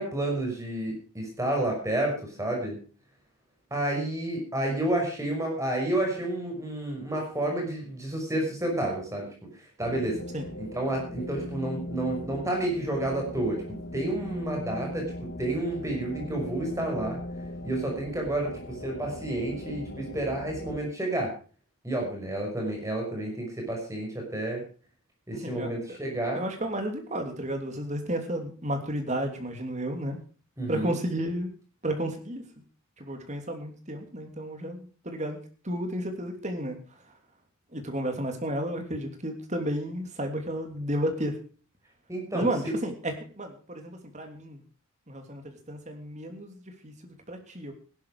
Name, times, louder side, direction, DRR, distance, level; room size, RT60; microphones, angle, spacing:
voice 1, 0.0-2.8 3.7-9.3 9.6-10.2 10.6-17.2 17.6-21.3 21.8-24.6 25.3-26.4 30.6-30.9 42.1-42.7, right 1 dB, 15° right, 1 dB, 5.8 m, -30 dB
sound 1, 9.8-20.8, left 1 dB, 55° left, 2.1 m, -39 dB
voice 2, 25.4-26.0 26.3-30.2 30.7-31.5 31.8-32.4 33.0-35.4 35.6-36.8 37.7-41.4 42.3-44.6 45.1-47.7, right 1 dB, 30° right, 5 dB, 3.0 m, -32 dB
16.0 x 12.0 x 4.9 m, 0.38 s
head